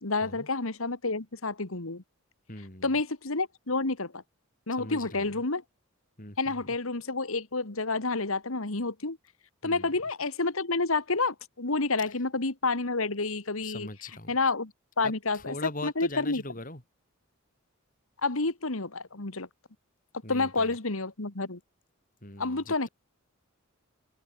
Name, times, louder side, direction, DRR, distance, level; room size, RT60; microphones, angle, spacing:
voice 1, 0.0-2.0 2.8-4.2 4.7-5.6 6.4-9.2 9.6-13.9 14.3-14.7 15.0-15.6 15.8-16.4 18.2-19.5 20.3-21.6 22.4-22.9, left 3 dB, 75° left, 2.0 m, -29 dB
voice 2, 2.5-3.0 4.8-5.4 6.2-6.7 9.6-9.9 13.6-14.3 15.0-16.8 20.2-20.8 22.2-22.9, left 2 dB, 40° left, 6.8 m, -41 dB
head